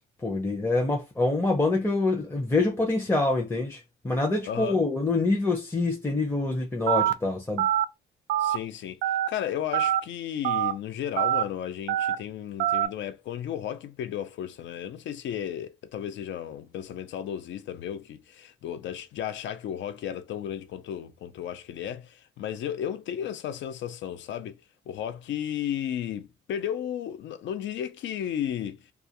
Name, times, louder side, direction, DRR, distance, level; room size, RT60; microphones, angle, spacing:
voice 1, 0.2-7.7, left 2 dB, 10° left, 0.6 m, -26 dB
voice 2, 4.5-4.8 8.4-9.0 9.3-24.5 24.9-28.9, left 10 dB, 70° left, 0.5 m, -34 dB
Telephone, 6.9-7.1 7.6-7.8 8.3-8.6 9.0-9.3 9.7-10.0 10.4-10.7 11.2-11.4 11.9-12.2 12.6-12.9, right 12 dB, 75° right, 0.4 m, -24 dB
2.3 x 2.3 x 2.8 m
cardioid pair, 90°, 20 cm